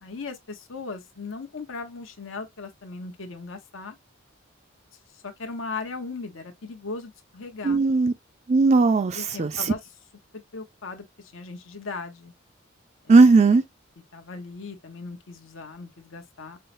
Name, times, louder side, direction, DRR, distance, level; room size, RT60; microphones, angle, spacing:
voice 1, 0.0-4.0 5.1-7.8 9.1-9.8 10.3-12.3 13.0-13.2 14.1-16.6, left 4 dB, 75° left, 0.9 m, -38 dB
voice 2, 7.6-8.1 8.5-9.6 13.1-13.6, right 3 dB, 35° right, 0.3 m, -17 dB
5.5 x 2.1 x 2.5 m
head